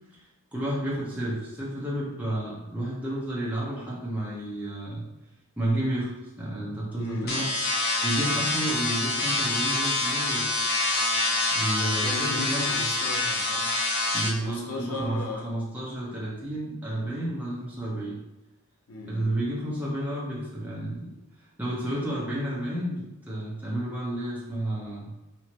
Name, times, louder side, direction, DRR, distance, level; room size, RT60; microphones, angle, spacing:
voice 1, 0.5-5.0 5.6-6.1 6.4-7.5 8.0-10.5 11.5-12.7 14.1-18.2 19.1-21.1 21.6-25.1, right 1 dB, 10° right, -7 dB, 0.8 m, -31 dB
voice 2, 7.0-7.4 11.9-13.7 14.4-15.5 18.9-19.4, left 2 dB, 85° left, -1 dB, 0.9 m, -36 dB
sound 1, 7.3-14.3, left 2 dB, 45° left, 0.8 m, -26 dB
4.4 x 2.7 x 3.0 m, 0.98 s
head